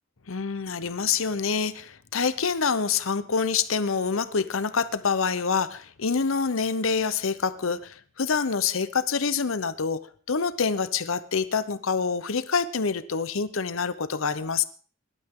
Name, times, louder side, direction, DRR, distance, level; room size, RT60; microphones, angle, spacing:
voice 1, 0.3-10.0 10.3-14.6, left 5 dB, 80° left, 13 dB, 0.8 m, -26 dB
21.5 x 12.0 x 3.7 m, 0.43 s
head